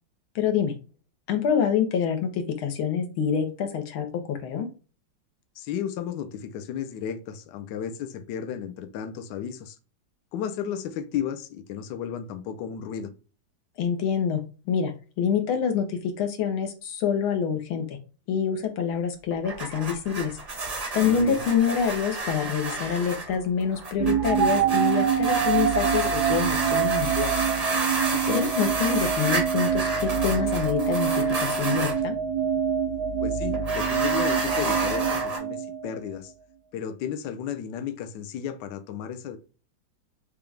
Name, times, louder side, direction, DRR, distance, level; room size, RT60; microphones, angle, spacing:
voice 1, 0.4-0.7 1.3-4.7 13.8-14.4 14.7-14.9 15.2-18.0 18.3-20.4 20.9-27.3 28.3-32.2, left 7 dB, 85° left, 1.8 m, -26 dB
voice 2, 5.6-9.8 10.3-13.1 21.0-21.4 28.1-28.5 33.2-36.3 36.7-39.4, left 8 dB, 70° left, 1.1 m, -33 dB
sound 1, 19.3-32.0 33.5-35.4, right 3 dB, 35° right, 0.6 m, -31 dB
sound 2, 24.0-36.1, right 7 dB, 70° right, 1.0 m, -26 dB
6.8 x 2.4 x 3.2 m
omnidirectional pair, 2.2 m